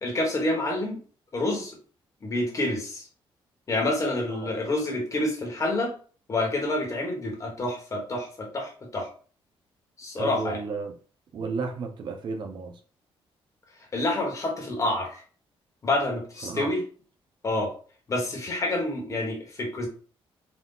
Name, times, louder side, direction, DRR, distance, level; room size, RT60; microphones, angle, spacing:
voice 1, 0.0-1.0 1.3-1.8 2.2-3.1 3.7-5.9 6.3-9.1 10.0-10.6 13.9-15.2 15.8-16.8 17.4-17.7 18.1-19.9, left 2 dB, 35° left, 0 dB, 1.3 m, -28 dB
voice 2, 10.2-10.9 11.3-12.8 16.4-16.7, right 4 dB, 50° right, 6 dB, 0.6 m, -33 dB
4.0 x 2.4 x 3.8 m, 0.40 s
cardioid pair, 140°, 10 cm